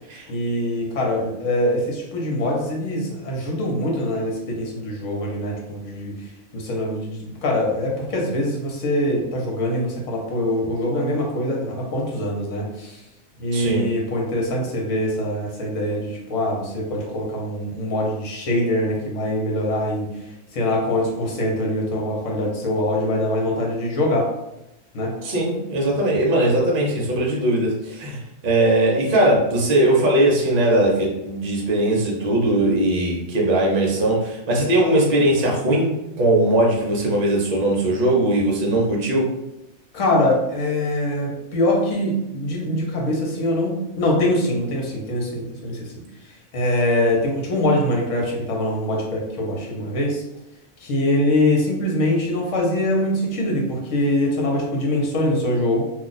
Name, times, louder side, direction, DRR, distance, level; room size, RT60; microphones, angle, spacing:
voice 1, 0.3-6.2 6.5-13.0 13.4-20.1 20.5-24.3 24.9-25.1 39.9-45.9 46.5-50.2 50.8-55.8, left 1 dB, 65° left, -1 dB, 1.2 m, -23 dB
voice 2, 13.5-13.9 25.2-35.9 36.2-39.3, right 1 dB, 45° right, -2 dB, 0.8 m, -20 dB
2.5 x 2.3 x 3.9 m, 0.91 s
omnidirectional pair, 1.4 m